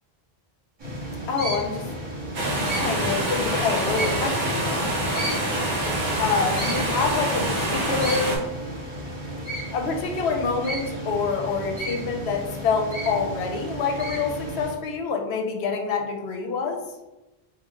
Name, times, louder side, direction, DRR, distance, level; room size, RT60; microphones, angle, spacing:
sound 1, 0.8-14.7, right 1 dB, 35° right, 1.1 m, -34 dB
voice 1, 1.3-1.8 2.7-4.9 6.2-8.4 9.7-16.8, left 5 dB, 85° left, 3 dB, 0.9 m, -26 dB
sound 2, 2.3-8.4, right 1 dB, 55° right, 0.9 m, -26 dB
3.2 x 2.3 x 3.6 m, 1.0 s
omnidirectional pair, 1.1 m